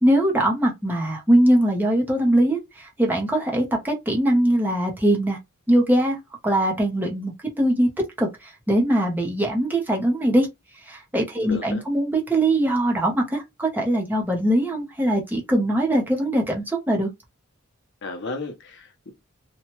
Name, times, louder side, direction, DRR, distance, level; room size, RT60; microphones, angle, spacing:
voice 1, 0.0-5.4 5.7-6.2 6.4-7.9 8.2-10.5 10.8-17.1, right 1 dB, 10° right, 0.7 m, -21 dB
voice 2, 11.4-11.8 18.0-19.1, left 3 dB, 55° left, 0.7 m, -34 dB
2.9 x 2.2 x 2.9 m
head